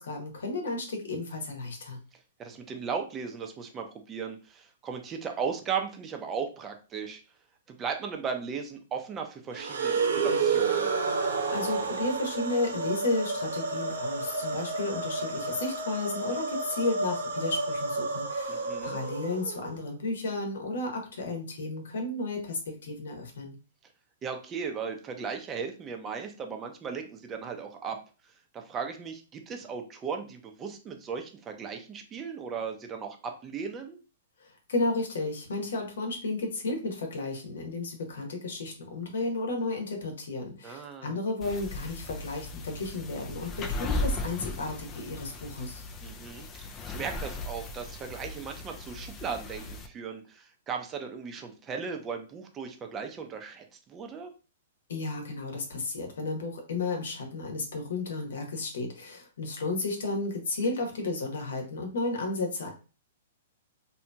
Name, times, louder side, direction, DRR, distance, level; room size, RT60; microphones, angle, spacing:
voice 1, 0.0-2.0 11.3-23.6 34.4-45.8 54.9-62.7, left 2 dB, 80° left, 3 dB, 1.0 m, -33 dB
voice 2, 2.4-7.2 7.7-10.9 18.5-19.0 24.2-28.0 28.5-34.0 40.6-41.2 46.0-54.3, right 6 dB, 20° right, 4 dB, 0.6 m, -37 dB
sound 1, 9.5-19.8, right 4 dB, 90° right, 0.7 m, -30 dB
sound 2, 41.4-49.9, left 2 dB, 25° left, 0.3 m, -37 dB
2.7 x 2.7 x 2.2 m, 0.35 s
hypercardioid pair, 135°, 0 cm